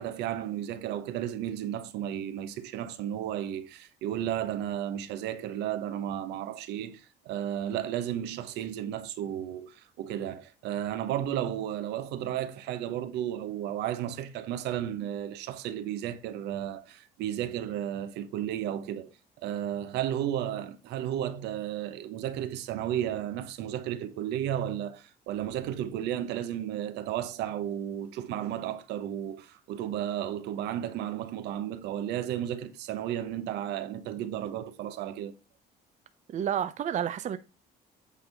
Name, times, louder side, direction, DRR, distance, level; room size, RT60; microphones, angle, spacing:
voice 1, 0.0-19.1 19.4-35.3, right 11 dB, 85° right, 0.9 m, -33 dB
voice 2, 36.3-37.4, right 9 dB, 45° right, 0.6 m, -30 dB
8.4 x 3.5 x 5.6 m
cardioid pair, 110°, 17 cm